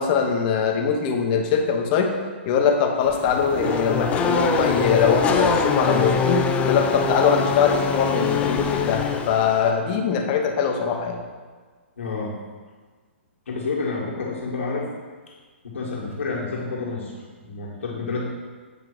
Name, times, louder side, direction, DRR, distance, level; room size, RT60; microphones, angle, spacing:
voice 1, 0.0-2.1 2.5-11.2, left 6 dB, 40° left, 3 dB, 0.9 m, -22 dB
Race car auto racing / Accelerating revving vroom, 3.0-9.7, left 6 dB, 20° left, 0.5 m, -24 dB
sound 1, 3.6-8.9, right 1 dB, 20° right, 0.9 m, -31 dB
voice 2, 12.0-12.3 13.5-14.9 15.6-18.3, left 3 dB, 75° left, -4 dB, 1.9 m, -29 dB
7.9 x 3.5 x 5.0 m, 1.4 s
hypercardioid pair, 130°, 7 cm